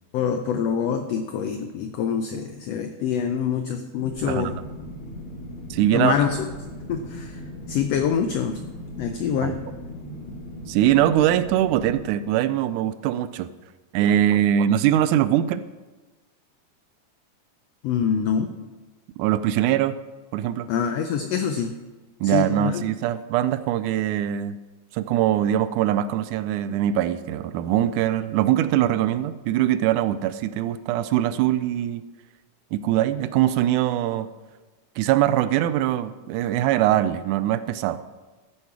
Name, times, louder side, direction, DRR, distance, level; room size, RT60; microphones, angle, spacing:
voice 1, 0.1-4.6 5.9-6.4 6.9-7.4 7.7-8.6 9.0-9.6 17.8-18.5 20.7-21.7 22.2-22.8, left 7 dB, 85° left, 7 dB, 1.4 m, -25 dB
sound 1, 4.0-12.0, equal, 60° left, 3.5 m, -38 dB
voice 2, 5.7-6.1 9.4-9.6 10.7-13.5 13.9-15.6 19.2-20.0 20.3-20.7 22.2-24.6 24.9-32.1 32.7-34.3 35.0-38.0, right 12 dB, 85° right, 13 dB, 2.0 m, -22 dB
13.5 x 7.3 x 4.7 m, 1.2 s
omnidirectional pair, 3.6 m